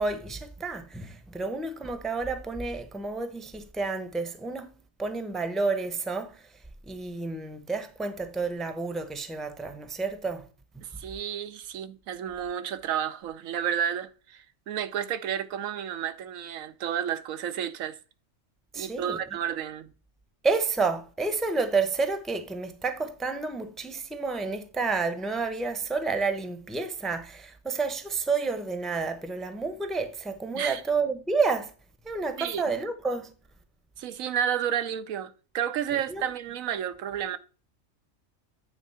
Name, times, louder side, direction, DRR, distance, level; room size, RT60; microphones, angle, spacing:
voice 1, 0.0-6.4 6.9-10.5 10.7-10.8 18.7-19.2 20.4-31.7 32.0-33.3 35.9-36.2, right 4 dB, ahead, 0.7 m, -30 dB
voice 2, 10.8-18.0 18.8-19.9 30.5-30.8 32.4-32.6 34.0-37.4, right 9 dB, 85° right, 1.1 m, -31 dB
9.3 x 3.7 x 5.6 m
omnidirectional pair, 1.4 m